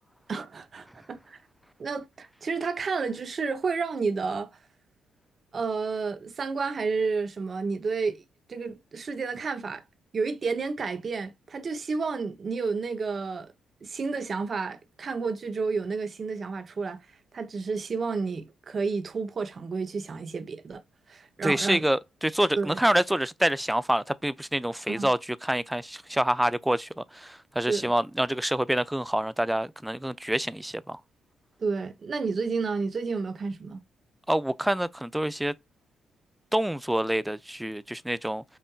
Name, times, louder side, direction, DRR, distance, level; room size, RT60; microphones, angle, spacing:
voice 1, 0.3-1.4 1.8-4.5 5.5-8.2 8.5-9.8 10.1-13.5 13.8-17.0 17.3-20.8 21.1-21.8 22.6-22.8 24.9-25.1 27.7-27.9 31.6-33.8, right 4 dB, 40° right, 0.7 m, -31 dB
voice 2, 21.4-31.0 34.3-35.5 36.5-38.4, right 1 dB, 5° right, 0.3 m, -27 dB
5.5 x 2.5 x 2.3 m
cardioid pair, 90°, 0 cm